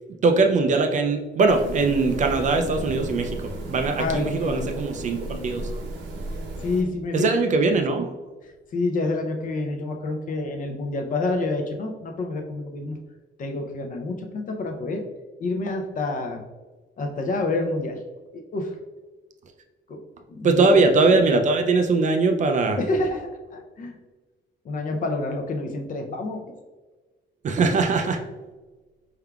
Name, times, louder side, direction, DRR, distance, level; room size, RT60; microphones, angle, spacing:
voice 1, 0.2-5.7 7.1-8.1 20.4-22.8 27.4-28.2, right 3 dB, 40° right, 5 dB, 0.4 m, -21 dB
sound 1, 1.5-6.8, right 1 dB, 70° right, 0.9 m, -34 dB
voice 2, 4.0-4.7 6.6-7.7 8.4-13.0 13.4-15.0 15.4-16.4 17.0-18.0 18.3-18.7 19.9-20.0 20.3-20.9 22.8-23.9 24.6-26.4, left 2 dB, 45° left, 3 dB, 0.6 m, -28 dB
4.5 x 3.6 x 2.3 m, 1.3 s
cardioid pair, 145°, 20 cm